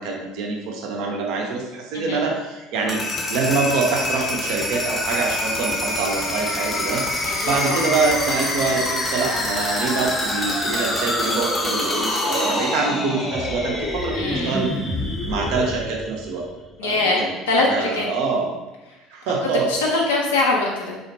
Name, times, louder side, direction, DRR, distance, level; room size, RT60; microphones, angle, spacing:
voice 1, 0.0-3.0 3.3-7.0 7.5-14.7 15.3-16.4 16.8-17.3 17.6-18.5 19.1-19.7, right 4 dB, 60° right, 0 dB, 0.5 m, -25 dB
sound 1, 2.7-16.6, left 1 dB, 20° left, 0.6 m, -26 dB
voice 2, 7.2-7.8 14.1-14.6 16.8-18.0 19.5-21.0, left 2 dB, 75° left, -2 dB, 0.4 m, -23 dB
2.5 x 2.1 x 2.8 m, 1.0 s
figure-of-eight pair, 60°, 0 cm